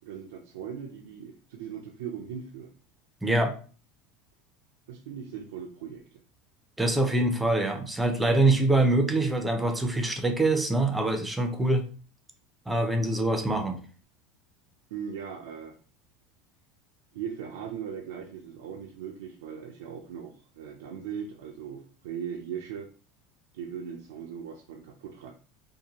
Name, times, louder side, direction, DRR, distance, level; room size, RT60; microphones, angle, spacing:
voice 1, 0.0-2.7 4.9-6.2 14.9-15.8 17.1-22.9 23.5-25.3, right 8 dB, 85° right, 1 dB, 0.4 m, -39 dB
voice 2, 3.2-3.5 6.8-11.8 12.7-13.8, right 2 dB, 10° right, 5 dB, 0.5 m, -24 dB
2.6 x 2.1 x 2.8 m, 0.38 s
supercardioid pair, 120°, 0 cm